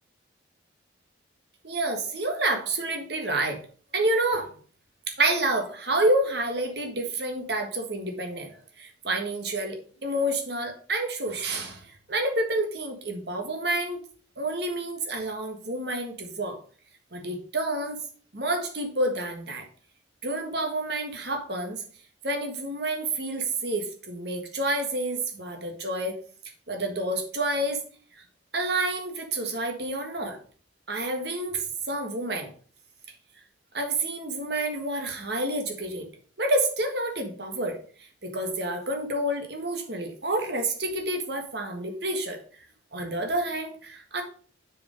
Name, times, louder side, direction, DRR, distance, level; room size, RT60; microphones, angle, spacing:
voice 1, 1.6-3.6 3.9-4.5 5.2-11.8 12.1-14.0 14.4-16.6 17.1-18.0 18.3-19.6 20.2-21.8 22.2-26.1 26.7-27.8 28.5-30.4 30.9-32.5 33.7-36.1 36.4-37.8 38.2-42.4 42.9-44.2, right 2 dB, 55° right, 4 dB, 1.6 m, -29 dB
6.8 x 5.0 x 5.1 m, 0.43 s
head